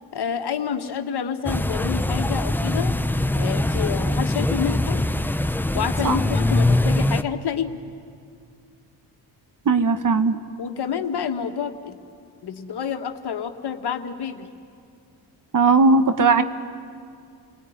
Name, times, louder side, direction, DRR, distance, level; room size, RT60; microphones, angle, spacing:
voice 1, 0.1-2.9 3.3-5.0 5.7-7.8 10.6-12.0 12.4-14.5, left 7 dB, 50° left, 6 dB, 1.8 m, -28 dB
sound 1, 1.4-7.2, left 1 dB, 5° left, 0.8 m, -22 dB
voice 2, 9.6-10.4 15.5-16.4, right 4 dB, 40° right, 10 dB, 1.3 m, -17 dB
29.0 x 19.5 x 9.5 m, 2.3 s
supercardioid pair, 60°, 49 cm